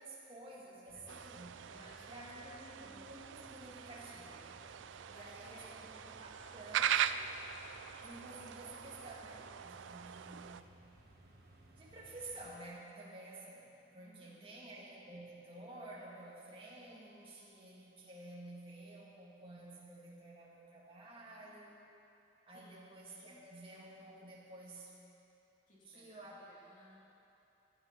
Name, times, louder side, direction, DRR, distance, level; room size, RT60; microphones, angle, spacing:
voice 1, 0.0-1.5 2.1-4.6 5.1-7.2 8.0-10.7 11.8-21.8 22.5-24.9 25.8-26.4, right 2 dB, 30° right, -5 dB, 2.6 m, -52 dB
voice 2, 0.9-1.3 1.7-3.1 5.1-5.9 14.0-14.6 22.5-22.8 23.2-23.4 25.7-27.0, left 1 dB, 45° left, -5 dB, 3.0 m, -62 dB
sound 1, 0.9-12.5, right 1 dB, 55° right, 1.7 m, -61 dB
sound 2, 1.1-10.6, right 9 dB, 85° right, 0.4 m, -41 dB
17.0 x 12.5 x 4.2 m, 2.9 s
head